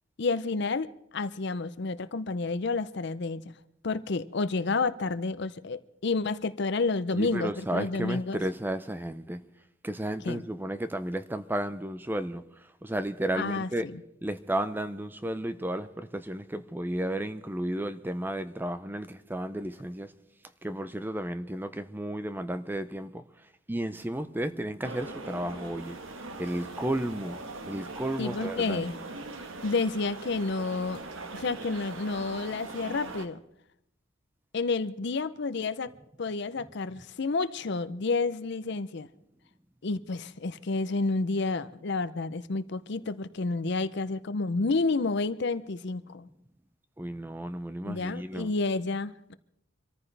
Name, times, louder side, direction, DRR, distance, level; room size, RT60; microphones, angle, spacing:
voice 1, 0.2-3.5 3.8-8.4 10.3-10.4 13.3-14.0 28.2-28.9 29.6-31.0 31.3-33.4 34.5-35.9 36.2-39.1 39.8-46.3 47.8-49.3, left 3 dB, 55° left, 0.6 m, -30 dB
voice 2, 7.1-9.4 9.8-12.4 12.8-13.9 14.2-20.1 20.6-23.2 23.7-26.0 26.4-27.4 27.7-28.9 47.0-48.5, right 1 dB, 10° right, 0.5 m, -33 dB
sound 1, 24.8-33.3, right 2 dB, 80° right, 1.4 m, -41 dB
25.5 x 14.0 x 3.3 m
head